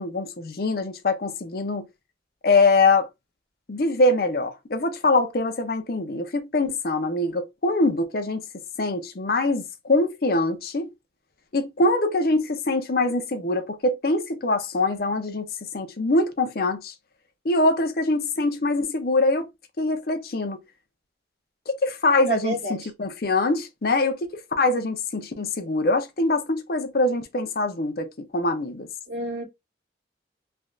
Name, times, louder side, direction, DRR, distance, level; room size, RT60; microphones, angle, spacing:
voice 1, 0.0-1.8 2.4-3.1 3.7-8.4 8.8-10.9 11.5-15.5 15.7-16.9 17.4-19.5 19.8-20.6 21.7-28.9, left 2 dB, 55° left, 0.6 m, -23 dB
voice 2, 22.3-22.8 29.1-29.4, right 2 dB, 80° right, 1.5 m, -28 dB
3.2 x 2.5 x 2.3 m
head